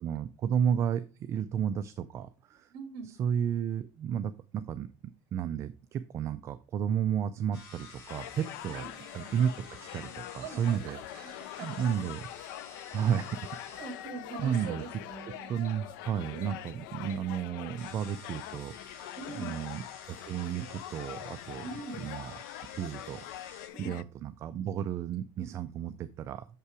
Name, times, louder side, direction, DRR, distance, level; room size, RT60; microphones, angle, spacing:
voice 1, 0.0-2.7 3.0-4.9 5.3-8.8 9.1-9.5 9.9-11.0 11.6-12.2 12.9-13.4 14.4-14.8 15.5-19.1 19.3-19.8 20.1-21.6 22.0-22.3 22.7-26.5, right 8 dB, 25° right, 10 dB, 0.3 m, -32 dB
voice 2, 2.7-3.1 8.7-8.9 10.4-11.9 12.4-12.5 13.7-15.5 19.1-19.6 21.6-22.0 23.7-23.9, right 4 dB, 45° right, 5 dB, 1.6 m, -43 dB
sound 1, 7.5-23.7, left 5 dB, 85° left, 3.9 m, -51 dB
sound 2, 8.1-24.0, left 14 dB, 70° left, 0.4 m, -44 dB
6.8 x 5.5 x 4.8 m, 0.33 s
cardioid pair, 170°, 11 cm